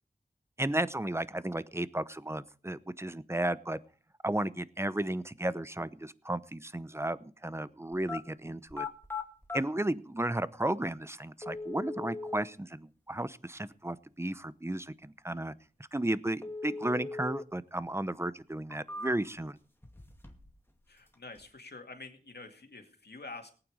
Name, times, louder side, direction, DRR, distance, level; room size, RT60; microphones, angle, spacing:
voice 1, 0.6-3.8 4.2-8.9 9.5-15.5 15.9-19.6, right 1 dB, 15° right, 16 dB, 0.8 m, -34 dB
sound 1, 7.9-8.2 8.7-9.6 10.6-10.7 11.4-12.4 16.4-17.4 17.8-17.9 18.5-19.4 19.8-20.6 20.8-21.4, left 3 dB, 15° left, 2.3 m, -40 dB
voice 2, 20.9-23.5, left 3 dB, 85° left, 4 dB, 2.1 m, -47 dB
18.5 x 9.1 x 5.0 m, 0.41 s
wide cardioid pair, 45°, 17 cm